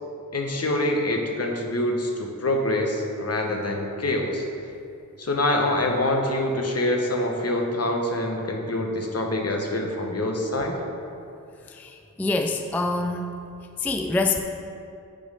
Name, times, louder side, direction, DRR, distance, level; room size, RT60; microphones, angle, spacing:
voice 1, 0.3-4.4 5.2-10.7, left 1 dB, 45° left, 2 dB, 0.9 m, -25 dB
voice 2, 11.7-13.3 13.8-14.4, left 3 dB, 5° left, 5 dB, 0.3 m, -25 dB
8.4 x 3.1 x 5.3 m, 2.5 s
wide cardioid pair, 60°, 33 cm